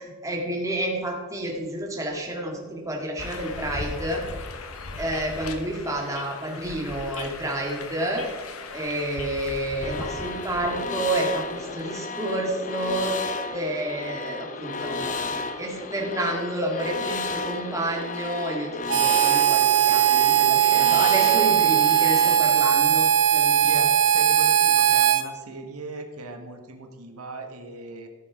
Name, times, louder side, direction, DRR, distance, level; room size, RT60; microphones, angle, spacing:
voice 1, 0.0-4.2 5.0-8.2 8.7-23.0 23.3-23.7, right 1 dB, 15° right, -1 dB, 1.9 m, -30 dB
sound 1, 3.2-12.0, left 3 dB, 70° left, 1.1 m, -38 dB
sound 2, 9.8-22.4, left 3 dB, 35° left, 0.6 m, -33 dB
Harmonica, 18.9-25.2, right 10 dB, 55° right, 0.8 m, -19 dB
voice 2, 23.6-28.1, right 2 dB, 80° right, 5 dB, 1.3 m, -38 dB
14.0 x 6.5 x 5.0 m, 1.5 s
head